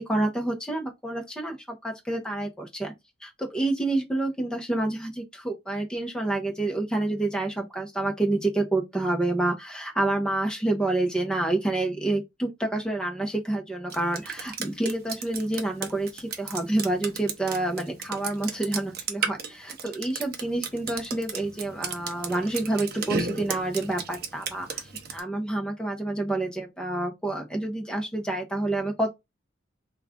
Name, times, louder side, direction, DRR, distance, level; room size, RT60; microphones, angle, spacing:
voice 1, 0.0-2.9 3.2-24.8 25.1-29.1, right 2 dB, 5° left, 0.9 m, -28 dB
Drip, 13.9-25.2, right 5 dB, 50° right, 0.7 m, -34 dB
3.2 x 2.4 x 3.6 m
head